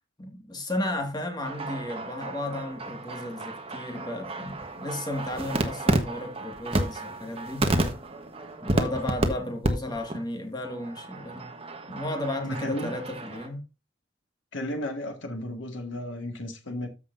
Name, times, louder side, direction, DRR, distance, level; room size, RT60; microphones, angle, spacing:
voice 1, 0.2-7.7 8.6-11.5 11.9-13.6, left 1 dB, 20° left, 2.0 m, -34 dB
sound 1, 1.4-9.3 9.6-9.7 9.9-10.2 10.6-13.5, right 1 dB, 30° right, 1.3 m, -31 dB
voice 2, 12.4-13.0 14.5-16.9, left 1 dB, 75° left, 1.9 m, -34 dB
14.0 x 5.7 x 2.7 m
head